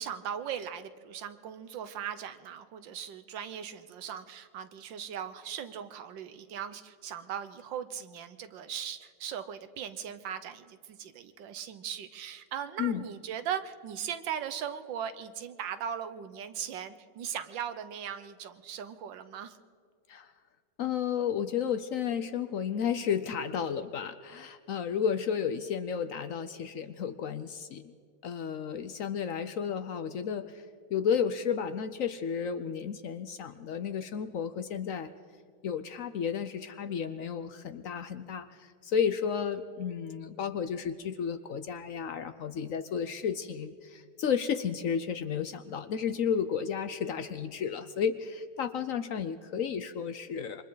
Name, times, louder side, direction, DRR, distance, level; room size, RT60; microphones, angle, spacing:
voice 1, 0.0-19.6, right 8 dB, 85° right, 11 dB, 1.6 m, -39 dB
voice 2, 20.8-27.9 28.2-30.6 30.9-35.1 35.6-50.6, left 7 dB, 65° left, 10 dB, 0.8 m, -32 dB
27.5 x 24.0 x 3.9 m, 2.1 s
omnidirectional pair, 2.0 m